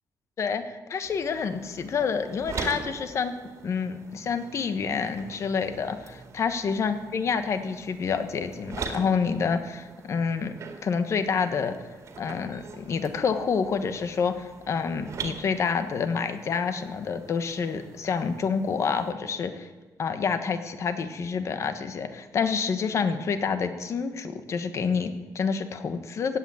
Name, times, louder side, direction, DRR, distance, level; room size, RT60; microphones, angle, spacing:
voice 1, 0.4-3.3 3.6-10.5 10.8-11.9 12.2-19.7 20.0-26.4, left 5 dB, 45° left, 9 dB, 1.3 m, -28 dB
sound 1, 1.0-19.1, right 4 dB, 45° right, 2.1 m, -43 dB
16.0 x 8.7 x 9.5 m, 1.2 s
cardioid pair, 170°, 7 cm